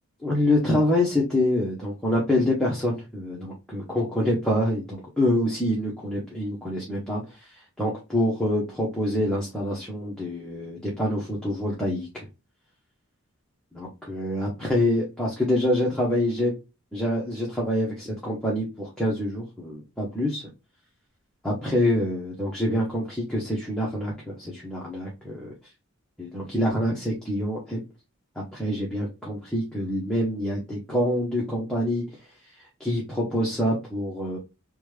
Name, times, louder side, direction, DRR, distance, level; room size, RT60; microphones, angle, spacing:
voice 1, 0.2-12.3 13.7-16.5 16.9-20.4 21.4-25.5 26.2-27.8 28.4-32.0 32.8-34.4, left 1 dB, 5° left, -5 dB, 0.7 m, -26 dB
3.2 x 2.2 x 3.1 m, 0.27 s
head